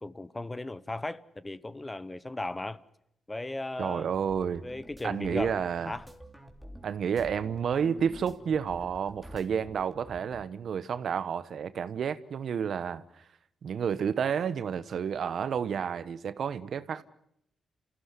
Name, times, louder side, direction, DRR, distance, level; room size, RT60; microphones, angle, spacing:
voice 1, 0.0-2.8 3.3-4.1 4.6-5.6 5.9-6.1, left 2 dB, 20° left, 1.0 m, -36 dB
voice 2, 3.8-4.6 5.0-6.0 6.8-13.2 13.6-17.0, right 7 dB, 70° right, 1.0 m, -30 dB
sound 1, 4.1-10.4, right 1 dB, 5° right, 3.2 m, -49 dB
28.0 x 16.0 x 9.7 m
cardioid pair, 70°, 0 cm